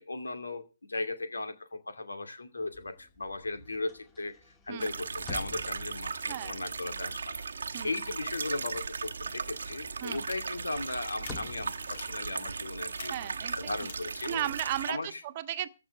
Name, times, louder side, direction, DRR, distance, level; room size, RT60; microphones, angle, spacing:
voice 1, 0.0-7.5 7.8-13.1 13.5-14.5 14.9-15.2, left 2 dB, 75° left, 2.5 m, -37 dB
sound 1, 2.6-9.1 9.4-14.8, left 3 dB, 15° left, 2.2 m, -50 dB
sound 2, 4.8-14.9, right 5 dB, 65° right, 1.1 m, -37 dB
sound 3, 10.1-10.4 10.9-11.3 11.8-12.1 13.0-13.1 13.7-13.9 14.6-14.7, left 5 dB, 50° left, 2.6 m, -44 dB
voice 2, 13.1-13.6 13.8-13.9 14.2-15.7, right 12 dB, 35° right, 1.3 m, -35 dB
15.0 x 6.1 x 9.1 m
figure-of-eight pair, 140°, 0 cm